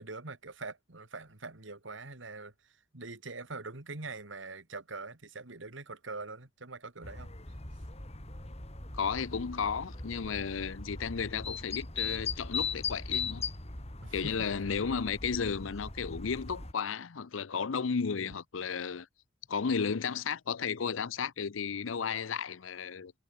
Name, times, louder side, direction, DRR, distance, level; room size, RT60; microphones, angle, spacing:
voice 1, 0.0-7.3 14.0-14.5, right 3 dB, 70° right, 2.3 m, -43 dB
sound 1, 7.0-16.7, left 5 dB, 35° left, 3.2 m, -39 dB
voice 2, 8.9-13.4 14.1-19.1 19.5-23.1, left 6 dB, 85° left, 0.6 m, -33 dB
head